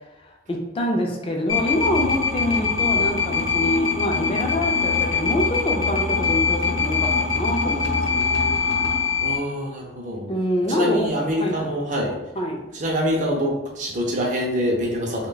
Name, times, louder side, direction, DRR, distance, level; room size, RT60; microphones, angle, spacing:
voice 1, 0.2-8.6 10.3-11.1 11.4-11.8 12.4-12.6, left 1 dB, 30° left, 1 dB, 0.4 m, -26 dB
sound 1, 1.5-9.4, left 5 dB, 85° left, 0.7 m, -23 dB
voice 2, 9.2-10.3 10.7-12.2 12.7-15.3, equal, 40° right, -1 dB, 0.4 m, -25 dB
3.1 x 2.2 x 3.8 m, 0.99 s
head